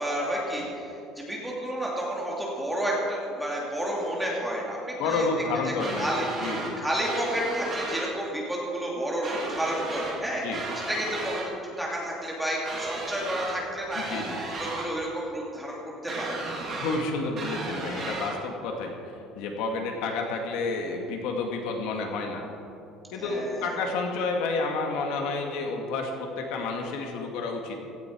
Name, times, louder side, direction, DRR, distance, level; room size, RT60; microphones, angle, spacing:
voice 1, 0.0-5.3 6.0-6.3 6.8-11.4 11.8-14.2 14.8-16.5 23.1-23.7 26.5-26.7, right 1 dB, 5° right, -4 dB, 2.8 m, -31 dB
voice 2, 5.0-6.1 6.4-6.7 10.4-10.6 14.0-14.4 16.8-18.9 19.4-22.4 23.1-27.8, left 3 dB, 70° left, 2 dB, 2.1 m, -30 dB
sound 1, 5.8-6.7 7.0-8.1 9.2-10.2 10.5-11.5 12.6-13.6 13.9-14.9 16.1-17.0 17.4-18.3, right 3 dB, 25° right, 2.5 m, -34 dB
16.5 x 14.0 x 4.7 m, 2.8 s
cardioid pair, 175°, 0 cm